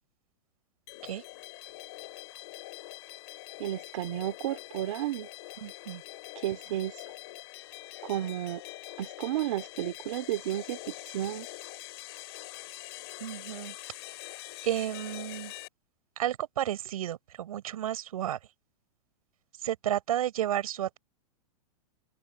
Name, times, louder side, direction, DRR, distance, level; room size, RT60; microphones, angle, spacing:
sound 1, 0.9-15.7, left 20 dB, 45° left, 7.5 m, -44 dB
voice 1, 3.6-5.3 6.3-7.0 8.0-8.6 9.0-11.5, right 13 dB, 50° right, 3.0 m, -32 dB
voice 2, 5.6-6.0 13.2-13.8 14.6-15.5 16.2-18.4 19.6-21.0, right 11 dB, 70° right, 7.1 m, -32 dB
open air
supercardioid pair, 175°, 19 cm